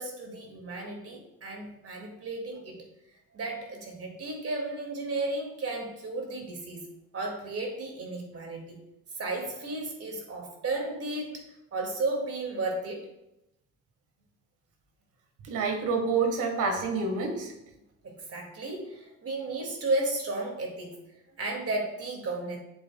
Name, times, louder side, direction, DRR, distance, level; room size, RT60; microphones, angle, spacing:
voice 1, 0.0-2.9 3.3-6.9 7.1-8.8 9.1-11.4 11.7-13.1 18.0-22.6, right 2 dB, 50° right, 1 dB, 2.4 m, -34 dB
voice 2, 15.4-17.5, right 4 dB, 85° right, 4 dB, 1.7 m, -28 dB
7.8 x 7.5 x 2.3 m, 0.86 s
cardioid pair, 90°, 30 cm